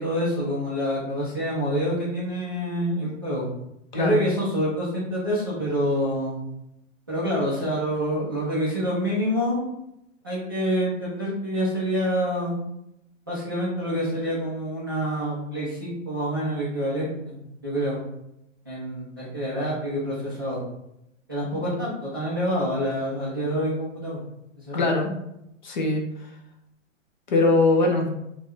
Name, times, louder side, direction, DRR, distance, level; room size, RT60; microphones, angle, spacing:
voice 1, 0.0-3.5 3.9-6.4 7.1-9.6 10.2-12.6 13.3-17.4 17.6-18.0 18.6-20.6 21.3-24.2 24.6-24.9, equal, 20° right, -9 dB, 0.4 m, -27 dB
voice 2, 24.7-25.1 25.6-26.0 27.3-28.1, left 2 dB, 35° left, 1 dB, 0.5 m, -21 dB
5.2 x 2.2 x 3.1 m, 0.82 s
hypercardioid pair, 170°, 39 cm